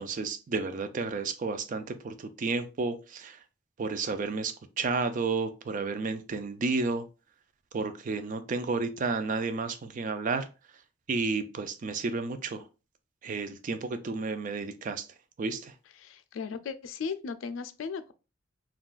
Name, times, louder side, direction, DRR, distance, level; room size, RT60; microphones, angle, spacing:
voice 1, 0.0-3.4 3.8-7.0 7.7-10.5 11.1-12.7 13.2-15.1 15.4-15.7, right 4 dB, 45° right, 0.4 m, -31 dB
voice 2, 16.0-18.1, left 5 dB, 90° left, 0.4 m, -36 dB
3.8 x 2.3 x 2.4 m
head